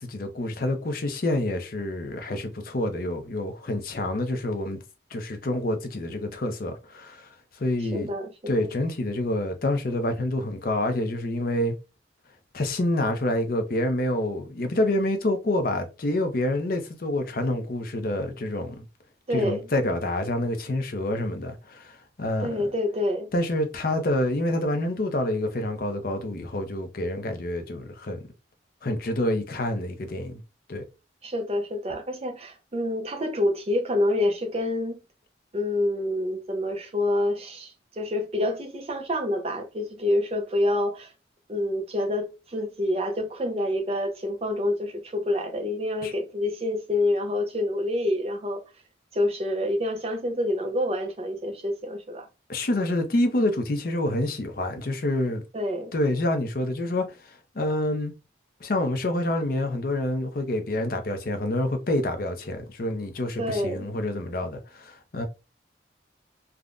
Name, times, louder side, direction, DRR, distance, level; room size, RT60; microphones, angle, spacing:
voice 1, 0.0-4.8 5.1-8.1 8.5-11.8 12.5-18.8 19.3-22.7 23.3-28.2 28.8-30.4 30.7-30.9 46.0-46.1 52.5-55.4 55.9-58.1 58.6-65.3, left 1 dB, 50° left, 0.5 m, -27 dB
voice 2, 7.9-8.7 19.3-19.7 22.4-23.3 31.2-35.0 35.5-41.1 41.5-48.6 49.1-52.3 55.5-55.9 63.4-63.9, left 1 dB, 30° right, 0.5 m, -27 dB
3.5 x 2.1 x 2.4 m
head